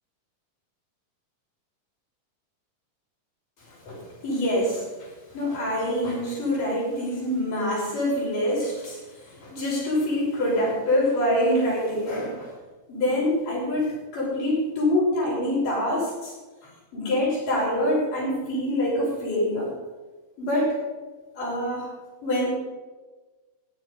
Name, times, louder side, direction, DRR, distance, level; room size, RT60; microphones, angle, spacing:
voice 1, 3.9-12.5 12.9-16.3 16.9-19.7 20.4-20.8 21.4-21.9 22.2-22.5, left 1 dB, 80° left, -5 dB, 7.5 m, -25 dB
15.5 x 10.5 x 5.3 m, 1.3 s
omnidirectional pair, 3.7 m